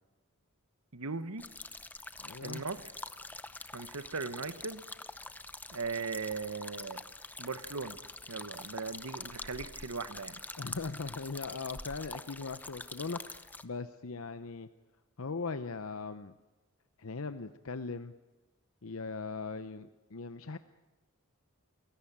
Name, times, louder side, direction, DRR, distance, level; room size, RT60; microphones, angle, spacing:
voice 1, 0.9-1.4 2.4-2.8 3.7-4.8 5.7-7.0 7.4-8.0 8.3-10.4, right 4 dB, 80° right, 12 dB, 1.3 m, -38 dB
sound 1, 1.4-13.6, left 2 dB, 10° left, 0.7 m, -45 dB
voice 2, 2.2-2.6 10.6-14.7 15.2-16.3 17.0-18.1 18.8-20.6, left 4 dB, 70° left, 11 dB, 0.8 m, -39 dB
28.5 x 17.5 x 8.7 m, 1.2 s
head